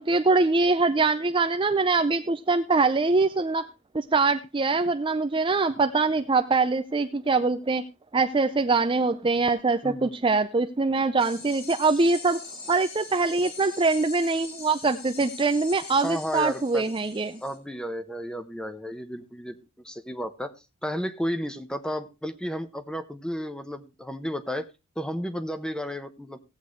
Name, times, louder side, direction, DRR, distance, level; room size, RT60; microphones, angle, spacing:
voice 1, 0.0-3.7 3.9-7.8 8.1-17.4, right 3 dB, 25° right, 8 dB, 0.5 m, -23 dB
voice 2, 9.8-10.1 16.0-16.9 17.4-19.6 19.8-20.5 20.8-24.7 25.0-26.4, equal, 5° left, 10 dB, 0.9 m, -32 dB
sound 1, 11.2-17.6, left 4 dB, 50° left, 2.4 m, -42 dB
17.0 x 8.0 x 3.2 m, 0.27 s
head